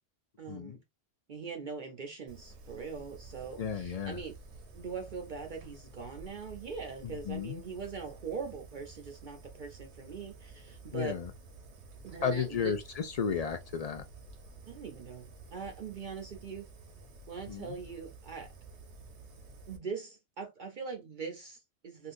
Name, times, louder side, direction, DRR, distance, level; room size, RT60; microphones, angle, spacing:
voice 1, 0.4-0.8 1.3-4.4 4.7-11.2 12.0-12.7 14.7-16.7 17.3-18.5 19.7-22.1, right 5 dB, 55° right, 0.7 m, -42 dB
Fire, 2.3-19.8, right 3 dB, 90° right, 1.1 m, -51 dB
voice 2, 3.6-4.2 7.0-7.6 10.9-11.3 12.2-14.0 17.5-17.8, left 7 dB, 55° left, 0.4 m, -33 dB
3.7 x 2.4 x 2.4 m
omnidirectional pair, 1.1 m